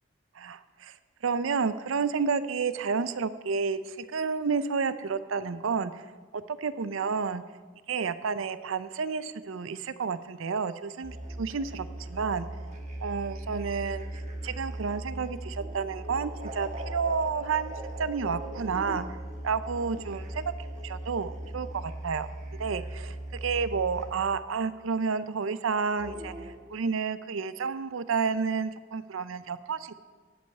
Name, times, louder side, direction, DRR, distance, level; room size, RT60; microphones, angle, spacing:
voice 1, 0.4-0.9 1.2-5.9 6.3-7.4 7.9-12.5 13.0-14.0 14.4-17.7 18.0-19.1 19.4-22.3 22.6-23.2 23.4-26.3 26.7-29.9, right 5 dB, 90° right, 13 dB, 0.5 m, -30 dB
sound 1, 11.0-24.2 26.0-26.5, right 1 dB, 40° right, 1.3 m, -39 dB
11.0 x 5.4 x 8.3 m, 1.4 s
head